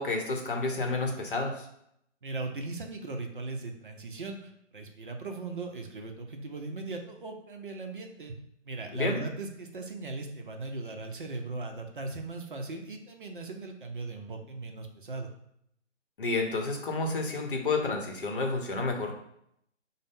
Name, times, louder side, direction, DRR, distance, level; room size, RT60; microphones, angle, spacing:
voice 1, 0.0-1.6 8.9-9.2 16.2-19.2, left 3 dB, 45° left, 2 dB, 0.8 m, -30 dB
voice 2, 2.2-8.3 8.6-15.3, right 3 dB, 45° right, 3 dB, 0.5 m, -38 dB
5.1 x 2.0 x 3.5 m, 0.75 s
figure-of-eight pair, 155°, 37 cm